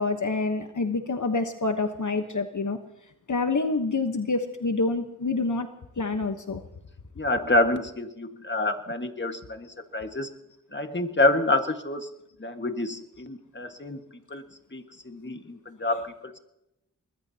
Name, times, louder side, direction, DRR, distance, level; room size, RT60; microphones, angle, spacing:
voice 1, 0.0-2.8 3.3-5.7 6.0-6.6 15.8-16.1, left 3 dB, 60° left, 1.2 m, -27 dB
voice 2, 7.2-10.3 10.7-12.1 12.4-14.0 14.3-14.4 14.7-16.4, left 2 dB, 35° left, 1.7 m, -27 dB
24.0 x 20.5 x 2.9 m
wide cardioid pair, 65°, 33 cm